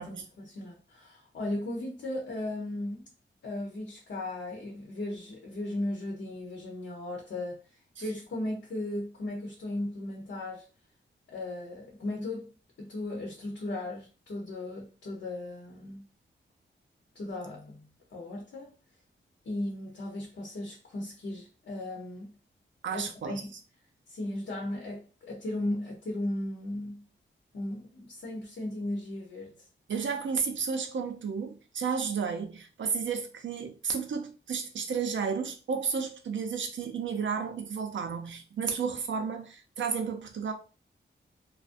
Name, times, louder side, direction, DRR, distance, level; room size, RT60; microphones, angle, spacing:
voice 1, 0.0-3.1 3.4-7.6 8.0-10.6 11.3-16.0 17.1-18.7 19.4-22.3 22.9-23.5 24.1-27.1 27.5-29.5, left 1 dB, 70° left, 0.8 m, -36 dB
voice 2, 22.8-23.4 29.9-40.5, right 6 dB, 70° right, 0.5 m, -32 dB
2.4 x 2.1 x 2.5 m
wide cardioid pair, 85°, 20 cm